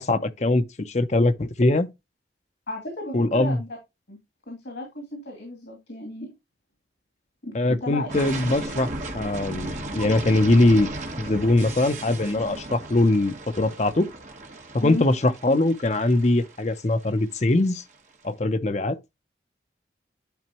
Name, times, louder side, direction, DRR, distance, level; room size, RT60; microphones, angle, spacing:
voice 1, 0.0-1.9 3.1-3.6 7.5-8.9 9.1-10.9 11.2-14.1 14.7-17.8 18.2-19.0, left 2 dB, 40° left, 0.6 m, -22 dB
voice 2, 2.7-3.7 4.1-4.2 4.5-6.3 7.4-8.1 14.8-15.0, left 1 dB, 80° left, 2.7 m, -34 dB
sound 1, 8.1-17.9, right 2 dB, 40° right, 1.4 m, -36 dB
10.5 x 4.3 x 3.0 m
head